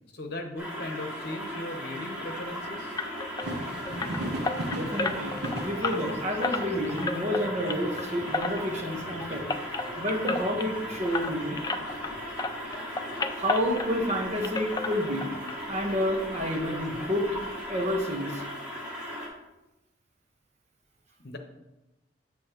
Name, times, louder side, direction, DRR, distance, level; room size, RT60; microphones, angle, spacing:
voice 1, 0.1-3.0 21.2-21.4, left 1 dB, 60° left, 4 dB, 1.0 m, -38 dB
sound 1, 0.6-19.3, equal, 5° right, 2.1 m, -37 dB
sound 2, 3.0-12.1 12.4-14.2 14.4-15.5 15.8-15.9 16.4-16.5 16.8-16.9, left 3 dB, 20° left, 0.3 m, -33 dB
sound 3, 3.4-18.1, right 1 dB, 60° right, 0.9 m, -42 dB
voice 2, 4.7-5.3 5.6-9.4 10.0-11.6 13.3-15.3 15.7-17.3 17.7-18.4, equal, 40° right, 0 dB, 1.3 m, -29 dB
7.3 x 7.1 x 3.1 m, 0.98 s
head